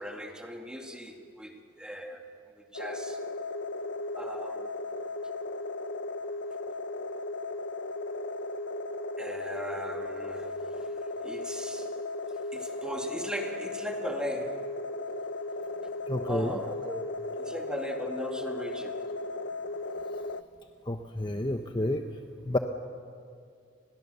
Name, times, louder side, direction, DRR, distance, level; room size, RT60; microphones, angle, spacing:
voice 1, 0.0-2.3 2.7-3.2 4.2-4.7 9.2-10.5 11.2-11.9 12.5-14.7 16.3-19.0, equal, 5° right, 2 dB, 2.3 m, -38 dB
sound 1, 2.7-20.4, left 2 dB, 70° left, 0.8 m, -36 dB
voice 2, 16.1-16.6 20.9-22.0 22.5-22.6, left 1 dB, 25° left, 5 dB, 0.9 m, -29 dB
30.0 x 21.5 x 6.9 m, 2.2 s
head